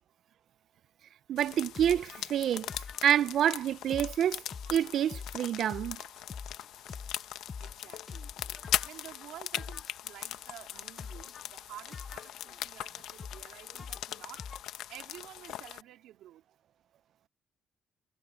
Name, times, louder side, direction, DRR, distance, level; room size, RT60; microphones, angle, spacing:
voice 1, 1.3-2.7 3.0-4.4 4.7-6.0 8.7-8.8, right 10 dB, 70° right, 0.5 m, -28 dB
sound 1, 1.4-15.8, left 12 dB, 85° left, 1.0 m, -40 dB
sound 2, 1.7-2.2 2.7-3.4 3.9-9.0 9.5-10.1 11.0-11.5 11.9-13.5 13.8-14.6, left 5 dB, 40° left, 0.6 m, -44 dB
voice 2, 7.6-8.4 8.8-14.5 14.9-16.4, right 13 dB, 85° right, 4.0 m, -51 dB
cardioid pair, 90°, 0 cm